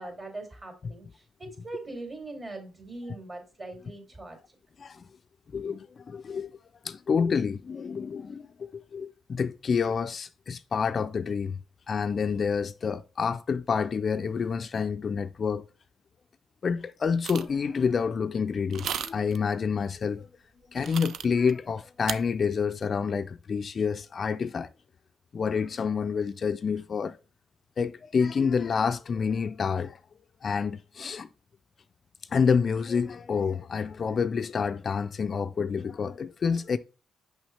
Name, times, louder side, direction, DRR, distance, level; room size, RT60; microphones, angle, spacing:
voice 1, 0.0-4.4, right 2 dB, 35° right, 2.7 m, -41 dB
voice 2, 5.5-6.5 6.8-11.6 11.9-15.6 16.6-20.3 20.7-24.7 25.3-27.2 27.8-30.0 30.4-31.3 32.3-36.8, left 6 dB, 45° left, 0.3 m, -28 dB
sound 1, 17.2-17.6 18.7-19.4 20.8-21.5 22.1-22.2, right 8 dB, 65° right, 0.4 m, -34 dB
6.1 x 5.4 x 3.2 m
cardioid pair, 90°, 0 cm